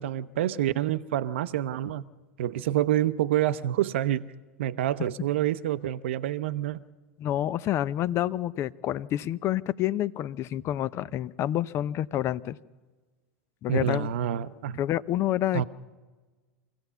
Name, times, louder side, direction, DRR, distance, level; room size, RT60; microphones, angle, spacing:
voice 1, 0.0-2.0 2.4-4.3 4.6-6.8 13.7-14.8 15.5-15.6, right 11 dB, 70° right, 0.6 m, -27 dB
voice 2, 7.2-12.6 13.6-14.1 14.8-15.6, left 12 dB, 40° left, 0.6 m, -28 dB
24.5 x 16.0 x 6.9 m
hypercardioid pair, 90°, 7 cm